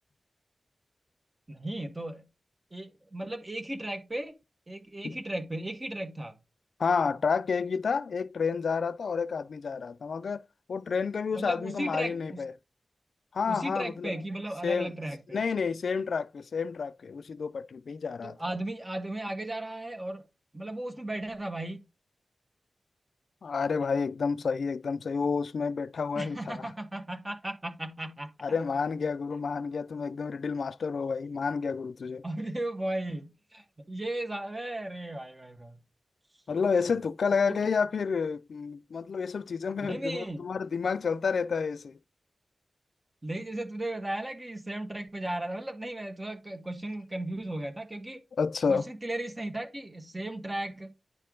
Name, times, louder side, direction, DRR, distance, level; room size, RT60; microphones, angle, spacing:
voice 1, 1.5-2.2 2.7-4.3 4.7-6.3 11.3-12.4 13.5-15.4 18.2-20.2 20.5-21.8 26.1-28.3 32.2-35.8 37.5-37.6 39.9-40.4 43.2-48.2 48.7-50.9, right 1 dB, 25° right, 1.4 m, -36 dB
voice 2, 6.8-10.4 10.7-12.5 13.3-14.1 14.6-14.9 15.3-18.4 23.4-26.7 28.4-32.2 36.5-42.0 48.4-48.9, left 5 dB, 85° left, 0.4 m, -30 dB
9.9 x 4.5 x 3.7 m
wide cardioid pair, 100°, 0 cm